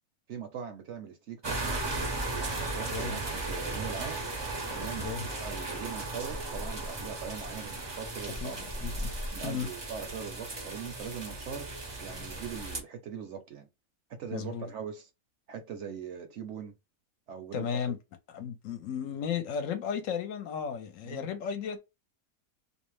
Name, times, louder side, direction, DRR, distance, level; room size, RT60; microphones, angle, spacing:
voice 1, 0.3-1.8 2.3-4.2 4.7-5.1 5.4-8.8 9.3-11.7 12.0-13.7 14.2-15.1 15.5-16.7 17.3-17.8 21.0-21.3, right 7 dB, 65° right, 0.8 m, -41 dB
sound 1, 1.4-12.8, right 2 dB, 35° right, 0.4 m, -36 dB
voice 2, 8.8-9.1 9.4-9.7 14.3-14.7 17.5-18.0 18.3-21.8, left 7 dB, 70° left, 0.9 m, -34 dB
2.6 x 2.0 x 3.0 m
omnidirectional pair, 1.5 m